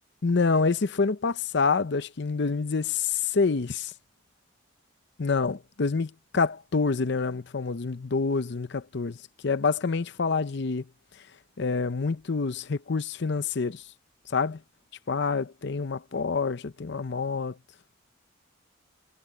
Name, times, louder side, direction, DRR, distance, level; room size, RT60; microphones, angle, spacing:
voice 1, 0.2-3.9 5.2-9.2 9.4-10.9 11.6-13.8 14.3-14.6 15.1-17.6, left 4 dB, 60° left, 0.6 m, -27 dB
head